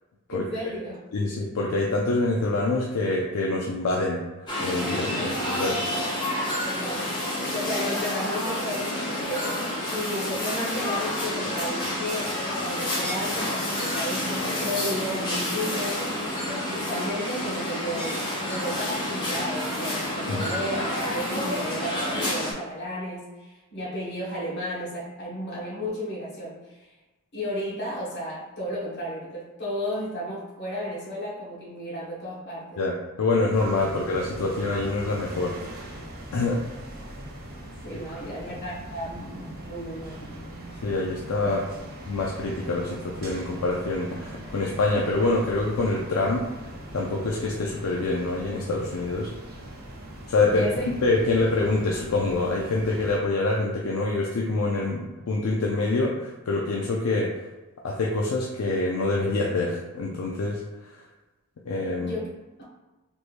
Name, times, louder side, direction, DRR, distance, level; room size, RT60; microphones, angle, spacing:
voice 1, 0.3-1.0 5.2-5.3 6.6-9.5 9.9-26.9 27.3-32.8 37.8-40.3 41.4-41.6 41.8-41.9 50.5-50.9 62.0-62.3, equal, 55° left, -6 dB, 1.3 m, -33 dB
voice 2, 1.1-4.2 4.6-5.8 20.3-20.5 32.8-35.9 36.3-36.6 40.8-41.6 42.0-46.5 46.9-49.3 50.3-50.7 51.0-57.3 57.8-60.6 61.7-62.1, left 2 dB, 75° left, -2 dB, 0.4 m, -26 dB
sound 1, 4.5-22.5, left 1 dB, 20° left, 0.8 m, -29 dB
sound 2, 33.5-53.2, right 1 dB, 45° right, 0.6 m, -41 dB
3.5 x 3.1 x 2.5 m, 1.1 s
head